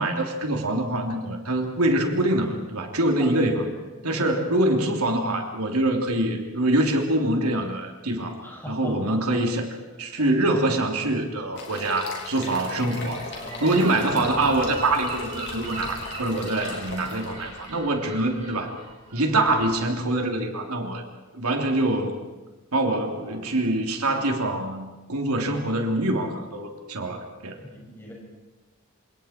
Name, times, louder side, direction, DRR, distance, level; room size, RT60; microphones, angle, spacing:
voice 1, 0.0-3.7 4.0-9.7 10.0-13.2 13.6-18.7 19.1-21.0 21.3-22.2 22.7-27.6, right 1 dB, 90° right, 2 dB, 3.4 m, -24 dB
voice 2, 3.2-3.8 4.2-4.3 8.4-9.2 9.9-10.3 13.1-13.8 23.2-23.4 27.6-28.1, left 1 dB, 10° left, -3 dB, 6.3 m, -39 dB
sound 1, 11.5-17.7, left 3 dB, 50° left, 4.9 m, -39 dB
Gull seagull / Wind, 12.7-19.9, right 2 dB, 30° right, 6.7 m, -39 dB
27.5 x 27.5 x 4.6 m, 1.2 s
head